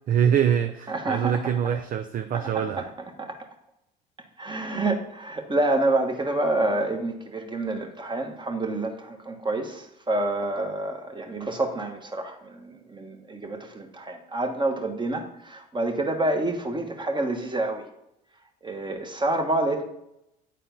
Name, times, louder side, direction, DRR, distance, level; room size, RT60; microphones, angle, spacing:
voice 1, 0.1-2.9, right 9 dB, 40° right, 8 dB, 0.5 m, -24 dB
voice 2, 0.9-1.4 2.3-2.9 3.2-3.4 4.4-17.8 18.6-19.8, right 2 dB, 20° right, 4 dB, 1.5 m, -28 dB
9.1 x 4.2 x 5.3 m, 0.84 s
supercardioid pair, 75°, 21 cm